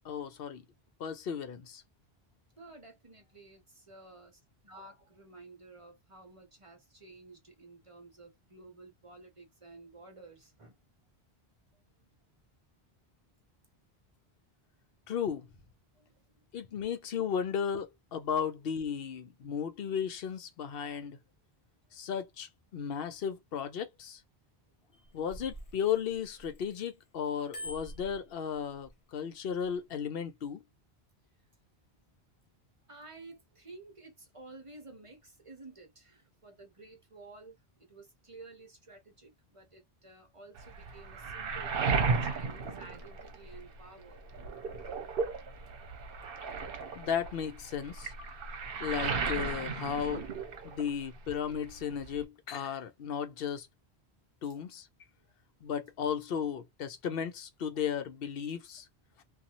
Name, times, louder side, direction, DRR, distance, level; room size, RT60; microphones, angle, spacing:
voice 1, 0.0-0.6 1.0-1.8 15.1-15.5 16.5-21.2 21.9-24.2 25.1-30.6 47.0-48.1 48.8-50.3 50.6-53.7 54.4-54.9 55.6-58.9, left 7 dB, 70° left, 0.8 m, -35 dB
voice 2, 2.6-10.8 11.7-11.8 15.9-16.2 32.9-37.6 37.9-44.2 55.2-55.3, right 2 dB, 35° right, 0.8 m, -53 dB
Bicycle bell, 24.9-26.8 27.2-28.9 29.5-29.7, equal, 35° left, 0.7 m, -46 dB
Waves surf, 40.6-43.8 44.1-51.0 51.3-52.2, right 4 dB, 65° right, 0.9 m, -35 dB
2.6 x 2.4 x 2.8 m
omnidirectional pair, 1.1 m